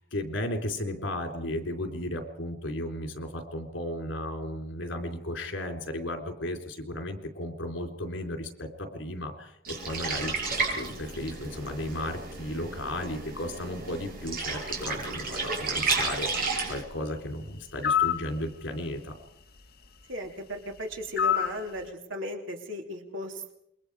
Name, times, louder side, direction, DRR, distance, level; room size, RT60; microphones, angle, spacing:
voice 1, 0.0-10.4 10.8-16.3 16.7-19.1, left 1 dB, 75° left, 4 dB, 3.8 m, -35 dB
sound 1, 9.6-16.8, right 4 dB, 45° right, 7.4 m, -32 dB
sound 2, 17.8-18.2 21.2-21.6, left 9 dB, 50° left, 1.7 m, -24 dB
voice 2, 20.1-23.5, equal, 80° right, 2 dB, 3.3 m, -36 dB
28.0 x 23.0 x 4.9 m, 0.79 s
head